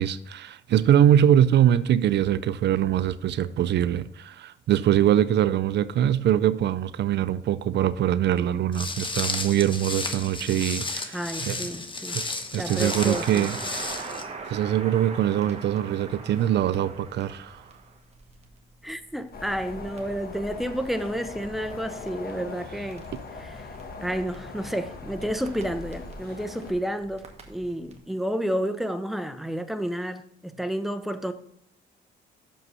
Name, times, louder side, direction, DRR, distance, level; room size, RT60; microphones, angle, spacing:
voice 1, 0.0-11.6 12.1-12.2 12.5-14.2 14.5-17.6, right 10 dB, 60° right, 0.4 m, -23 dB
Walk footsteps, 8.7-14.2, left 3 dB, 25° left, 1.0 m, -33 dB
voice 2, 11.1-12.2 12.6-13.5 18.8-23.1 23.4-23.6 24.0-31.3, equal, ahead, 0.6 m, -30 dB
Crackle, 12.5-28.0, right 4 dB, 35° right, 1.3 m, -42 dB
sound 1, 19.3-26.7, left 3 dB, 50° left, 1.2 m, -40 dB
6.3 x 5.4 x 5.4 m
cardioid pair, 90°, 20 cm